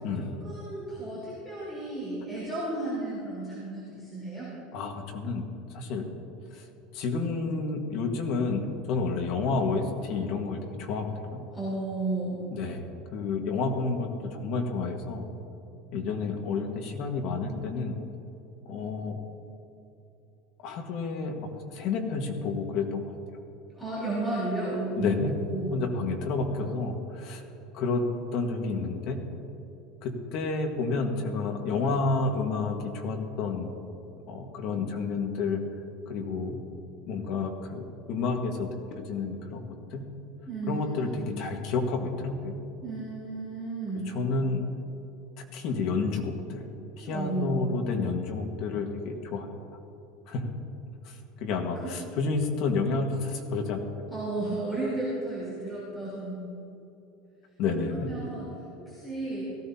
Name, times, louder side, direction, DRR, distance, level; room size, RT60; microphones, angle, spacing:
voice 1, 0.1-4.5 11.5-12.4 23.7-25.9 40.5-41.3 42.8-44.1 47.0-47.8 51.8-51.9 54.1-56.4 57.8-58.5 58.8-59.4, right 2 dB, 5° left, -10 dB, 3.6 m, -33 dB
voice 2, 4.7-5.4 5.7-6.1 6.5-6.7 6.9-11.4 12.5-12.8 13.1-15.2 15.9-17.9 18.6-19.2 20.6-23.0 25.0-25.3 25.7-27.4 27.7-28.1 28.3-29.2 30.0-33.7 34.3-35.6 36.1-36.6 37.1-39.6 39.9-40.0 40.7-42.6 44.1-44.6 45.5-46.7 47.0-49.5 50.3-50.5 51.0-53.8 57.6-58.1, left 4 dB, 45° left, 3 dB, 1.6 m, -30 dB
17.5 x 15.0 x 2.8 m, 2.8 s
supercardioid pair, 165°, 0 cm